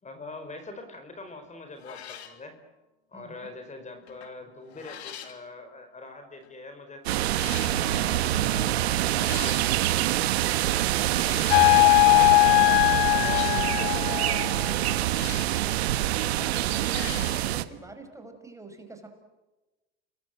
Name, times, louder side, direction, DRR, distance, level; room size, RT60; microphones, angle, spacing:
voice 1, 0.0-2.5 3.1-7.0 7.7-9.7, left 3 dB, 20° left, 7 dB, 4.7 m, -43 dB
sound 1, 1.3-1.4 1.8-2.4 4.1-4.4 4.7-5.4 6.4-6.5 7.2-7.8 9.0-9.8 11.1-11.9 13.1-13.8 14.9-15.7 16.8-17.5, left 10 dB, 90° left, 3.0 m, -42 dB
voice 2, 3.1-3.5 4.7-4.8 10.5-15.4 16.3-19.1, right 2 dB, 10° right, 5 dB, 5.6 m, -44 dB
sound 2, 7.1-17.6, right 14 dB, 85° right, 1.4 m, -26 dB
sound 3, 11.5-14.7, left 25 dB, 70° left, 1.1 m, -20 dB
29.0 x 22.0 x 7.7 m, 1.1 s
supercardioid pair, 100°, 31 cm